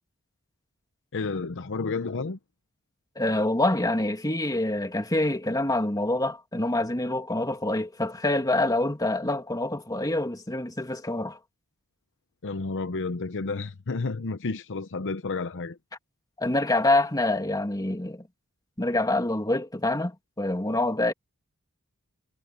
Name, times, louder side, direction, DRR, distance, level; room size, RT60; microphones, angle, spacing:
voice 1, 1.1-2.4 12.4-15.8, left 3 dB, 55° left, 0.8 m, -31 dB
voice 2, 3.2-11.4 16.4-18.2 18.8-21.1, left 2 dB, 15° left, 2.4 m, -26 dB
head